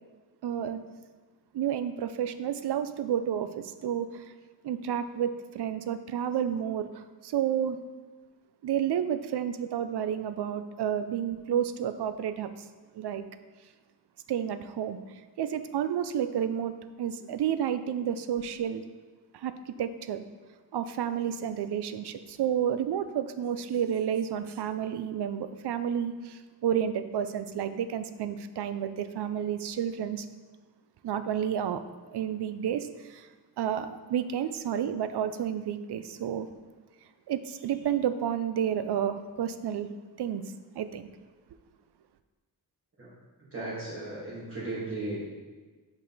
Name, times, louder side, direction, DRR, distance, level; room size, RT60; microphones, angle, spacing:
voice 1, 0.4-0.8 1.5-4.3 4.6-7.8 8.6-12.5 12.9-13.2 14.3-15.0 15.4-16.7 17.0-18.8 19.3-20.2 20.7-30.3 31.0-31.8 32.1-33.3 33.6-36.5 37.3-39.9 40.2-40.4 40.8-41.1, right 9 dB, 80° right, 11 dB, 0.5 m, -30 dB
voice 2, 43.4-45.3, right 2 dB, 35° right, -10 dB, 2.2 m, -36 dB
6.2 x 5.3 x 4.0 m, 1.4 s
wide cardioid pair, 100°, 39 cm